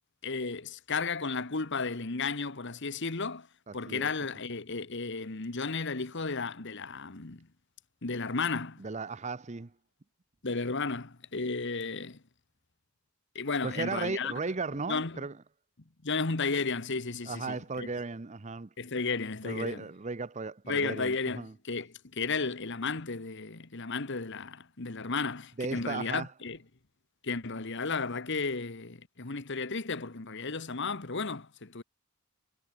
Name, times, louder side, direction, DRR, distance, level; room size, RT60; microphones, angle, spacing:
voice 1, 0.2-3.5 3.7-7.5 8.0-8.8 10.4-12.2 13.3-14.3 14.9-15.2 16.0-17.9 18.8-19.8 20.7-26.6 27.2-31.8, left 4 dB, 55° left, 1.4 m, -33 dB
voice 2, 3.7-4.1 8.8-9.7 13.6-15.4 17.3-18.7 19.4-21.5 25.6-26.3, right 4 dB, 30° right, 0.6 m, -36 dB
head